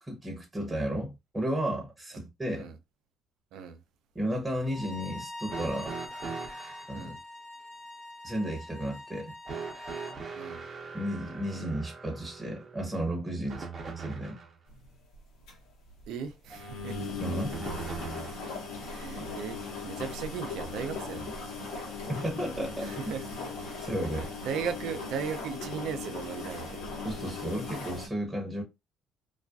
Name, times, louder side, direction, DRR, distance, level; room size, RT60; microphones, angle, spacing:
voice 1, 0.0-2.7 4.1-6.0 6.9-7.1 8.2-9.3 10.9-14.4 17.2-17.6 22.1-23.2 23.8-24.3 27.0-28.6, right 1 dB, 15° right, 0.9 m, -33 dB
Bowed string instrument, 4.6-10.2, left 1 dB, 30° left, 0.6 m, -44 dB
sound 1, 5.5-6.9 9.5-14.6 17.5-18.6 19.8-19.9 20.9-21.0, right 5 dB, 40° right, 0.7 m, -41 dB
sound 2, 14.7-14.9 15.1-15.2 15.5-15.6 15.9-16.0 16.5-28.1, left 3 dB, 75° left, 0.9 m, -38 dB
voice 2, 16.1-17.0 18.8-19.6 19.8-21.3 22.8-23.2 24.4-26.9, right 7 dB, 75° right, 0.5 m, -37 dB
2.3 x 2.2 x 2.5 m
supercardioid pair, 70°, 0 cm